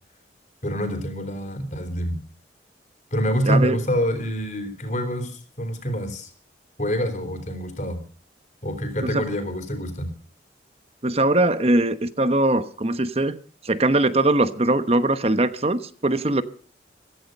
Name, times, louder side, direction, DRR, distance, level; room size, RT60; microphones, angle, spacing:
voice 1, 0.6-2.2 3.1-6.3 6.8-8.0 8.6-10.1, equal, 40° left, 8 dB, 3.9 m, -26 dB
voice 2, 3.4-3.8 9.0-9.2 11.0-13.3 13.6-16.4, right 2 dB, 35° right, 12 dB, 1.0 m, -21 dB
16.0 x 15.0 x 5.4 m, 0.43 s
head